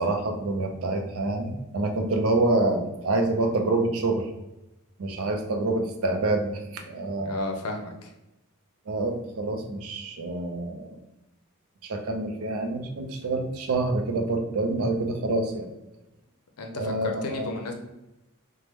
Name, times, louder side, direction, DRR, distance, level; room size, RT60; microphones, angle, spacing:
voice 1, 0.0-4.3 5.0-7.5 8.9-11.0 11.8-15.7 16.7-17.5, right 2 dB, 70° right, 4 dB, 0.5 m, -27 dB
voice 2, 7.2-8.1 16.6-17.7, left 3 dB, 85° left, 4 dB, 0.5 m, -34 dB
3.4 x 2.1 x 2.9 m, 0.95 s
head